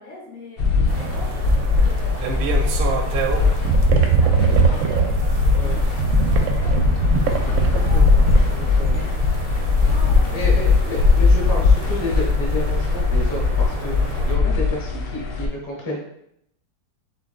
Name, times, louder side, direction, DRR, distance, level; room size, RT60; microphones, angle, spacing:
voice 1, 0.0-5.8 6.2-9.2 9.7-10.6 11.0-11.5, left 2 dB, 85° left, -4 dB, 2.2 m, -42 dB
sound 1, 0.6-15.5, left 4 dB, 70° left, 1.2 m, -20 dB
sound 2, 0.9-14.3, right 6 dB, 85° right, 1.3 m, -24 dB
voice 2, 7.9-8.2 8.5-9.0 10.3-16.0, left 1 dB, 15° left, -2 dB, 0.8 m, -30 dB
7.3 x 3.0 x 2.3 m, 0.74 s
omnidirectional pair, 2.1 m